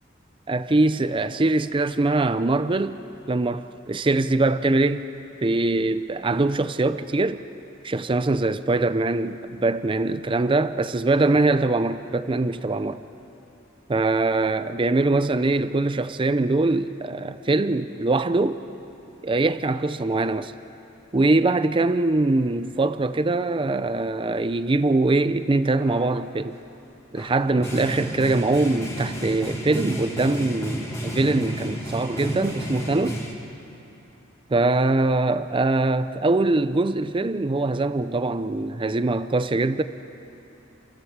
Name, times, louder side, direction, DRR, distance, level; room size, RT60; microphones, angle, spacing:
voice 1, 0.5-3.0 3.3-5.1 5.4-7.4 7.8-13.0 13.9-18.6 19.2-20.5 21.1-26.6 27.1-33.2 34.5-39.8, right 2 dB, 25° right, 0.5 m, -22 dB
sound 1, 25.8-26.1 27.2-33.3, right 1 dB, 15° left, 2.8 m, -31 dB
28.0 x 15.5 x 7.3 m
head